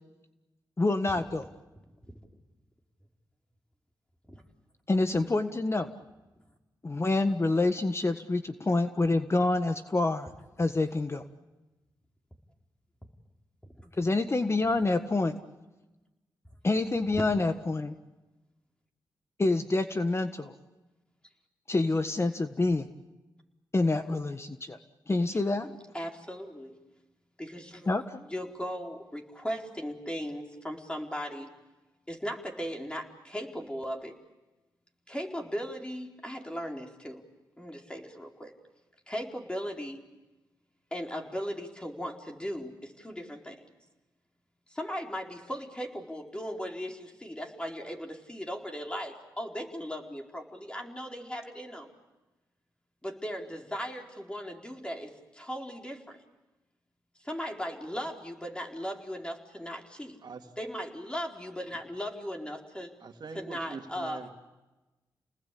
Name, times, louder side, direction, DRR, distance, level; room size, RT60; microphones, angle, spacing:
voice 1, 0.8-1.4 4.9-5.9 6.8-10.3 10.6-11.2 14.0-15.4 16.6-17.9 19.4-20.5 21.7-22.9 23.7-24.8 25.1-25.7 27.9-28.2, left 2 dB, 35° left, 9 dB, 1.5 m, -27 dB
voice 2, 1.8-2.1 4.3-4.4 7.3-7.4 13.6-13.9 17.2-17.3 25.6-26.7 27.4-27.9 28.2-31.5 32.1-34.2 35.1-37.2 37.6-38.5 39.1-40.0 40.9-43.6 44.7-51.9 53.0-56.2 57.2-60.2 60.6-62.9 63.3-64.2, equal, 10° left, 1 dB, 4.6 m, -38 dB
voice 3, 63.0-64.3, right 4 dB, 60° right, 4 dB, 2.5 m, -43 dB
30.0 x 20.0 x 8.6 m, 1.1 s
supercardioid pair, 50°, 8 cm